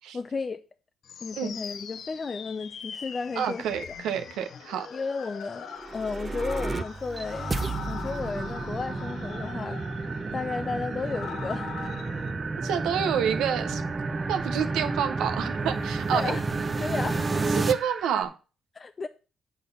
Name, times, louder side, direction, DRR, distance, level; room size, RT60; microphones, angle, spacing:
voice 1, 0.1-0.6 1.2-3.9 4.9-7.5 7.9-9.8 10.3-11.7 16.1-16.5 16.8-17.6 18.8-19.1, left 4 dB, 35° left, 0.5 m, -33 dB
sound 1, 1.1-12.3, left 8 dB, 65° left, 0.7 m, -42 dB
voice 2, 3.4-4.9 12.6-13.8 14.3-16.4 17.5-18.3, right 8 dB, 85° right, 0.9 m, -28 dB
sound 2, 4.4-18.3, right 5 dB, 45° right, 1.4 m, -41 dB
sound 3, 5.7-17.7, right 3 dB, 30° right, 0.6 m, -31 dB
8.4 x 4.0 x 6.7 m
cardioid pair, 90°, 0 cm